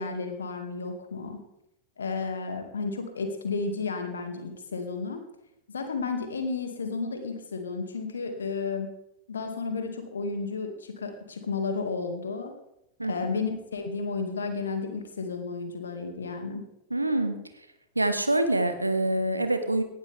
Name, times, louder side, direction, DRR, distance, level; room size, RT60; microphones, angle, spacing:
voice 1, 0.0-1.4 2.0-5.2 5.7-8.9 9.3-12.5 13.0-16.6, left 4 dB, 70° left, 6 dB, 2.3 m, -32 dB
voice 2, 13.0-13.4 16.9-17.4 17.9-19.8, right 1 dB, 85° right, 8 dB, 1.4 m, -26 dB
18.0 x 12.5 x 3.6 m, 0.82 s
figure-of-eight pair, 90°, 0 cm